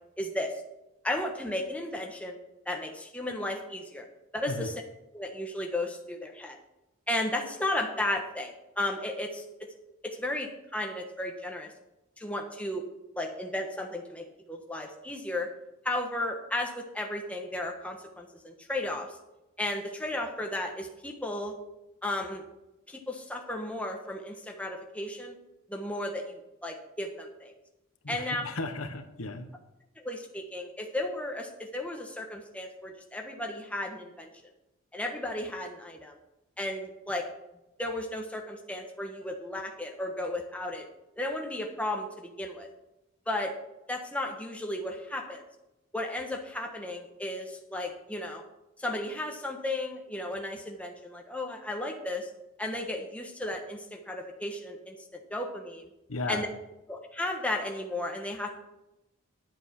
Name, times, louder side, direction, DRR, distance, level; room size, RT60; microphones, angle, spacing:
voice 1, 0.2-0.6 1.0-2.4 2.7-4.1 4.3-4.8 5.1-6.6 7.1-9.4 10.0-11.7 12.2-12.8 13.1-15.5 15.8-19.1 19.6-21.5 22.0-22.4 22.9-25.4 25.7-27.5 28.1-28.5 30.0-34.3 34.9-36.2 36.6-37.3 37.8-40.9 41.2-42.7 43.3-43.5 43.9-45.4 45.9-48.4 48.8-52.3 52.6-55.9 56.3-56.5 56.9-58.5, left 1 dB, 5° left, 2 dB, 1.2 m, -34 dB
voice 2, 28.0-29.5 56.1-56.5, left 2 dB, 85° left, 7 dB, 1.3 m, -35 dB
11.0 x 7.8 x 6.0 m, 0.95 s
head